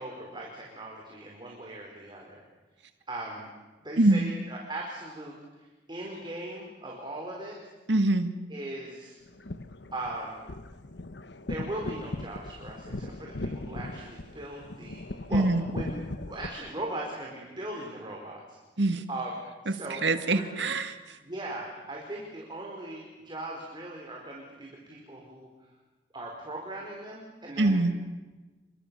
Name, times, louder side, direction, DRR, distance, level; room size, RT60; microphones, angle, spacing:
voice 1, 0.0-2.4 3.1-3.5 3.8-7.5 8.5-9.1 9.9-10.4 11.5-15.5 15.7-16.0 16.2-18.6 19.1-19.3 19.6-20.4 21.2-25.5 26.1-27.9, right 1 dB, 25° right, -1 dB, 4.9 m, -39 dB
voice 2, 4.0-4.3 7.9-8.3 15.3-15.6 18.8-19.0 19.7-21.2 27.6-27.9, right 2 dB, 90° right, 9 dB, 2.0 m, -24 dB
sound 1, 9.3-16.5, left 2 dB, 75° left, 1.2 m, -38 dB
29.0 x 24.5 x 7.1 m, 1.2 s
head